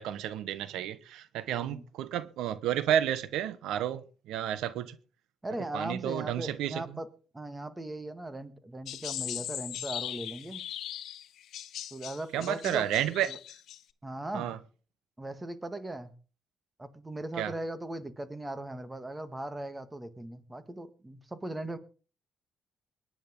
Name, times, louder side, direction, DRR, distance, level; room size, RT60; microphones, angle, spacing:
voice 1, 0.0-4.0 4.3-4.9 5.7-6.8 12.3-13.3 14.3-14.6 17.4-17.5, right 11 dB, 90° right, 1.0 m, -31 dB
voice 2, 5.4-7.1 7.3-10.7 11.9-12.9 13.3-13.4 14.0-14.6 15.2-16.1 16.8-21.8, right 1 dB, 15° right, 1.9 m, -38 dB
sound 1, 8.9-13.8, left 11 dB, 75° left, 1.2 m, -39 dB
21.5 x 10.5 x 3.8 m
cardioid pair, 90°, 0 cm